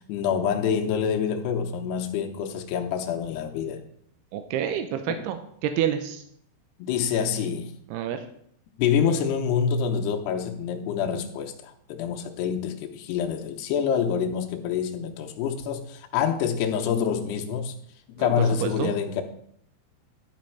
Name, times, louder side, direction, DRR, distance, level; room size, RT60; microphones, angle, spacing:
voice 1, 0.0-3.8 5.1-5.2 6.8-7.7 8.8-17.7 18.2-19.2, left 7 dB, 80° left, 3 dB, 2.6 m, -26 dB
voice 2, 4.3-6.2 7.9-8.2 18.2-18.3 18.6-18.9, right 9 dB, 90° right, 8 dB, 2.4 m, -28 dB
12.0 x 5.2 x 4.5 m, 0.67 s
omnidirectional pair, 5.4 m